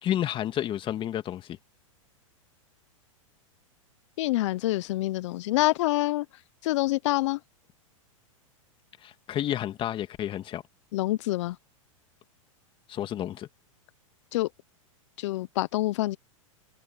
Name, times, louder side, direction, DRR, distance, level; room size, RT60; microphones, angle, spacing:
voice 1, 0.0-1.6 9.0-10.6 12.9-13.5, left 11 dB, 30° left, 2.0 m, -30 dB
voice 2, 4.2-6.2 6.6-7.4 10.9-11.6 14.3-14.5 15.2-16.2, left 17 dB, 60° left, 1.1 m, -26 dB
hypercardioid pair, 110°, 17 cm